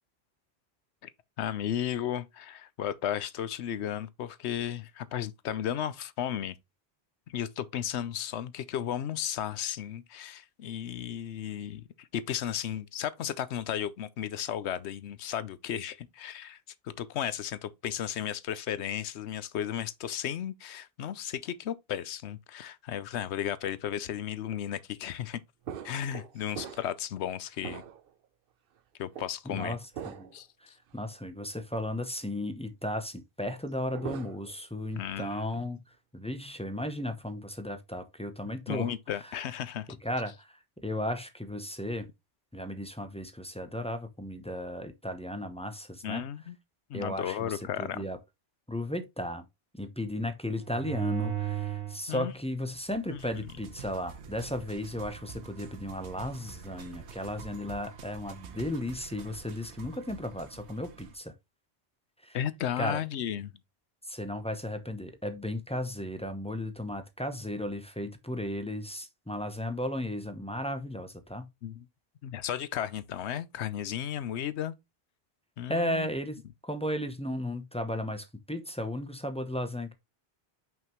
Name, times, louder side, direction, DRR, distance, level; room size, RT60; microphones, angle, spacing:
voice 1, 1.4-6.6 7.3-16.6 16.8-25.4 25.8-27.8 29.0-29.8 30.3-30.5 35.0-35.6 38.7-39.9 46.0-46.6 46.9-48.1 52.1-52.3 53.1-53.2 62.3-63.5 71.6-71.9 72.2-74.8 75.6-76.1, left 10 dB, 85° left, 0.9 m, -34 dB
sound 1, 25.6-27.2 27.6-28.3 29.1-29.3 29.9-30.4 30.9-31.0 33.7-34.6 35.0-35.3, right 8 dB, 60° right, 0.8 m, -42 dB
voice 2, 29.4-30.3 30.6-39.4 40.0-42.1 42.5-46.3 46.9-48.2 48.7-49.4 49.7-61.3 62.2-62.4 62.8-63.0 64.0-71.5 75.7-79.9, left 1 dB, 5° left, 0.7 m, -35 dB
sound 2, 50.6-52.0 52.6-61.1, right 10 dB, 80° right, 1.3 m, -41 dB
5.7 x 5.4 x 3.1 m
omnidirectional pair, 1.1 m